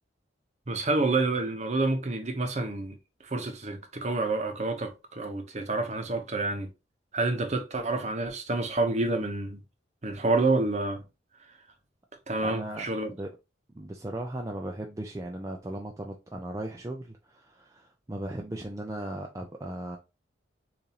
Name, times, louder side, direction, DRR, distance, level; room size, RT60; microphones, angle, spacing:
voice 1, 0.7-3.0 3.2-6.7 7.1-9.6 10.0-11.0 12.3-13.1, right 2 dB, 35° right, 0.8 m, -28 dB
voice 2, 12.4-12.8 13.1-13.3 13.8-20.0, right 1 dB, 15° right, 0.4 m, -37 dB
6.9 x 2.6 x 2.9 m
head